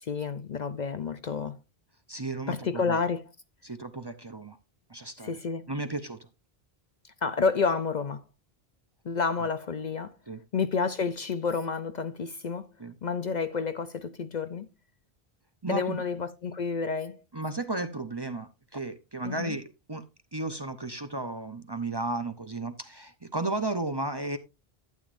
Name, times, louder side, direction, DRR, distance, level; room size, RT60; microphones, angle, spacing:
voice 1, 0.0-1.6 2.5-3.3 5.2-5.7 7.2-8.2 9.0-10.2 10.5-12.7 13.0-14.7 15.7-17.2 19.2-19.6, left 5 dB, 50° left, 0.7 m, -30 dB
voice 2, 2.1-3.0 3.6-4.6 4.9-5.4 5.7-6.2 10.3-10.4 12.8-12.9 15.6-16.0 17.3-20.0 20.3-24.4, right 2 dB, 25° right, 0.7 m, -34 dB
12.0 x 9.1 x 2.6 m
omnidirectional pair, 1.1 m